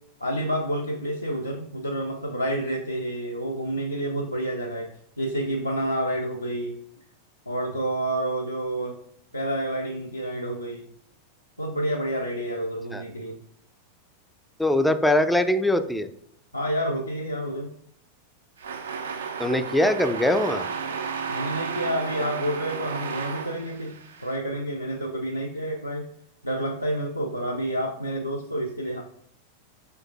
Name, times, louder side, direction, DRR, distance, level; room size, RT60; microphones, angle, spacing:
voice 1, 0.2-4.9 5.2-6.8 7.5-9.0 9.3-10.9 11.6-13.4 16.5-17.7 21.3-26.1 26.4-29.0, right 1 dB, 85° left, 0 dB, 0.4 m, -29 dB
voice 2, 14.6-16.1 19.4-20.7, left 1 dB, 5° left, 9 dB, 0.3 m, -22 dB
sound 1, 18.6-24.4, right 5 dB, 65° right, 0.4 m, -33 dB
4.6 x 4.5 x 2.4 m, 0.67 s
figure-of-eight pair, 90°, 0 cm